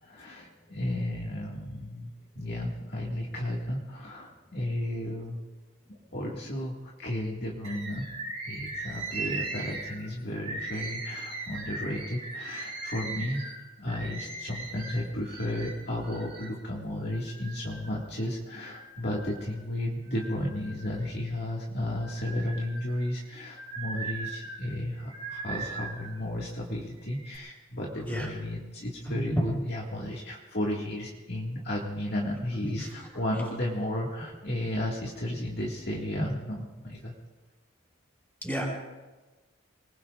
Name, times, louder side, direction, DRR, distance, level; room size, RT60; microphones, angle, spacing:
voice 1, 0.0-5.5 6.1-8.1 8.5-13.4 13.8-37.1, left 1 dB, 50° left, -3 dB, 2.0 m, -33 dB
Bird, 7.6-16.6 17.1-18.1 18.6-19.6 20.1-21.4 21.9-26.2 26.9-27.4, right 3 dB, 30° right, 3.6 m, -39 dB
voice 2, 29.0-29.5 32.6-33.4 36.2-36.3 38.4-38.7, equal, 10° left, -3 dB, 5.0 m, -32 dB
27.5 x 20.0 x 2.5 m, 1.2 s
head